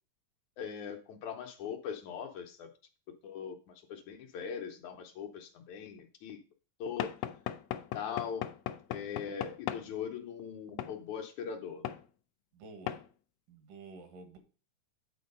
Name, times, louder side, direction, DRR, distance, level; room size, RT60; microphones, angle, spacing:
voice 1, 0.6-2.7 3.1-6.4 6.8-7.1 7.9-8.5 8.9-11.8, left 7 dB, 70° left, 4 dB, 2.0 m, -40 dB
Knock / Wood, 7.0-9.9 10.8-11.0 11.9-12.0 12.9-13.1, left 11 dB, 90° left, 1.6 m, -38 dB
voice 2, 12.5-13.0 13.5-14.4, right 3 dB, 80° right, 6 dB, 3.1 m, -50 dB
9.4 x 4.3 x 5.3 m, 0.35 s
omnidirectional pair, 3.8 m